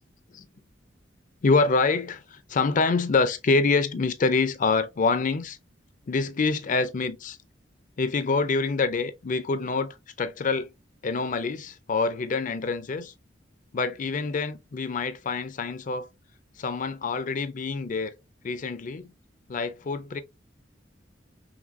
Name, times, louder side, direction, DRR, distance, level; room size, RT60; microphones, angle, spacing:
voice 1, 1.4-5.6 6.1-7.4 8.0-10.7 11.0-13.1 13.7-16.1 16.6-18.1 18.4-19.1 19.5-20.2, left 4 dB, 45° left, 0.5 m, -26 dB
5.9 x 2.2 x 2.5 m
head